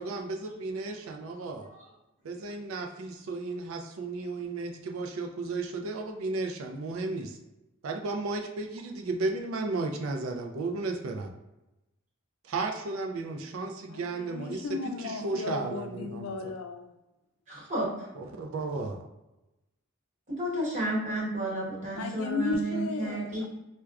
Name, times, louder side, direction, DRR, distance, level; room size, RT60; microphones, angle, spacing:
voice 1, 0.0-1.7 2.2-7.4 7.8-11.3 12.4-14.7 15.0-16.5 18.2-19.0, right 3 dB, 80° right, 3 dB, 0.4 m, -34 dB
voice 2, 13.9-16.9 22.0-23.5, left 3 dB, 85° left, 5 dB, 0.4 m, -35 dB
voice 3, 17.5-18.1 20.3-23.4, right 1 dB, 35° right, -5 dB, 1.1 m, -32 dB
4.5 x 2.2 x 2.4 m, 0.97 s
head